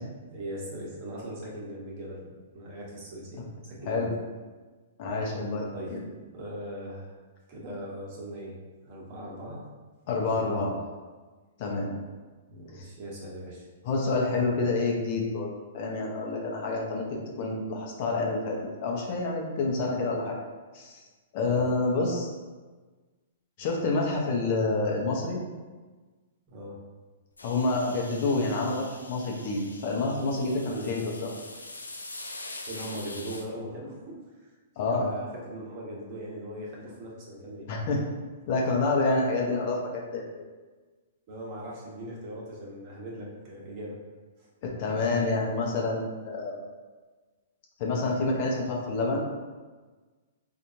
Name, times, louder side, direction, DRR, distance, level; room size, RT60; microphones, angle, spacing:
voice 1, 0.3-4.1 5.7-6.0 6.3-7.1 7.5-8.6 8.8-9.6 10.3-10.9 12.5-13.7 21.5-21.7 26.5-26.8 30.7-30.9 32.7-34.1 34.4-34.5 34.9-37.7 41.3-44.0 44.4-44.5, right 1 dB, 40° right, -4 dB, 1.1 m, -39 dB
voice 2, 5.0-6.0 10.1-10.7 11.6-11.9 12.8-12.9 13.8-15.5 15.7-17.0 17.4-20.4 20.7-21.0 21.3-22.3 23.6-25.4 27.4-31.3 34.8-35.1 37.7-38.0 38.5-40.3 44.6-46.6 47.8-49.2, left 3 dB, 50° left, -2 dB, 0.8 m, -28 dB
sound 1, 27.4-33.5, left 2 dB, 90° left, 0.4 m, -43 dB
4.3 x 2.5 x 2.7 m, 1.3 s
hypercardioid pair, 115°, 0 cm